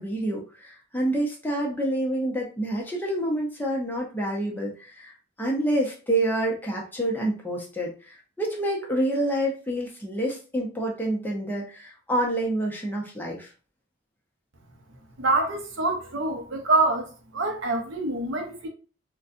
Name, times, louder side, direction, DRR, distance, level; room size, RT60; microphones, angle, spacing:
voice 1, 0.0-5.1 5.4-13.5, right 1 dB, 10° left, 0.7 m, -28 dB
voice 2, 15.2-18.7, right 2 dB, 70° right, 0.7 m, -26 dB
4.0 x 2.2 x 2.5 m
head